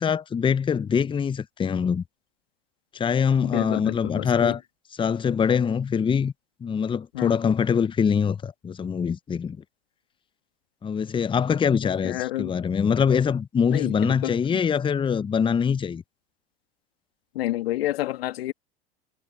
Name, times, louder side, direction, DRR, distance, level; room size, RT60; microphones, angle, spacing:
voice 1, 0.0-2.0 2.9-4.6 5.0-6.3 6.6-9.6 10.8-16.0, left 7 dB, 15° left, 0.7 m, -23 dB
voice 2, 3.5-4.6 7.1-7.3 12.0-12.5 13.7-14.6 17.3-18.5, left 15 dB, 70° left, 2.4 m, -29 dB
hypercardioid pair, 85°, 31 cm